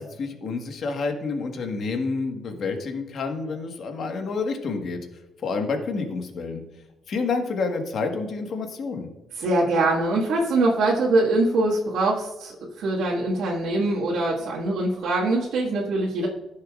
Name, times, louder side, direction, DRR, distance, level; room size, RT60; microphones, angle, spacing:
voice 1, 0.0-5.0 5.4-6.6 7.1-9.1, left 4 dB, 50° left, 4 dB, 1.4 m, -29 dB
voice 2, 9.4-16.3, right 2 dB, 85° right, -6 dB, 1.7 m, -23 dB
15.0 x 6.7 x 2.4 m, 1.1 s
cardioid pair, 155°, 0 cm